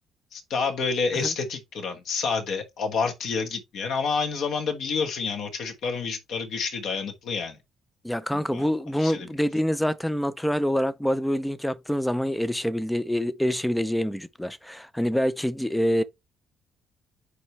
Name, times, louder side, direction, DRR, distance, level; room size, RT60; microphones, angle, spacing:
voice 1, 0.3-7.6 8.5-8.7 9.0-9.3, left 5 dB, 60° left, 1.3 m, -28 dB
voice 2, 8.0-16.0, equal, 5° left, 0.4 m, -26 dB
9.6 x 3.3 x 3.2 m
cardioid pair, 170°, 0 cm